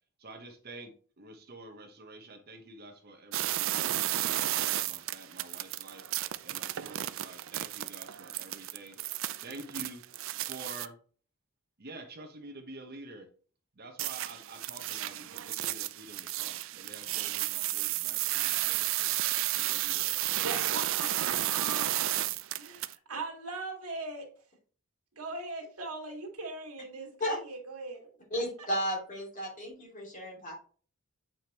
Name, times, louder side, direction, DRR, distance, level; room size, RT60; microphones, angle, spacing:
voice 1, 0.2-6.0 6.4-10.0 10.4-11.0 11.8-13.3 13.7-19.2 19.5-20.2, right 2 dB, 45° right, 1.1 m, -48 dB
sound 1, 3.3-10.9 14.0-22.9, right 14 dB, 60° right, 0.4 m, -32 dB
voice 2, 20.4-21.9 22.6-24.3 25.1-28.4, right 3 dB, 80° right, 2.1 m, -40 dB
voice 3, 28.3-30.5, equal, 35° left, 2.6 m, -33 dB
7.8 x 5.1 x 3.0 m
head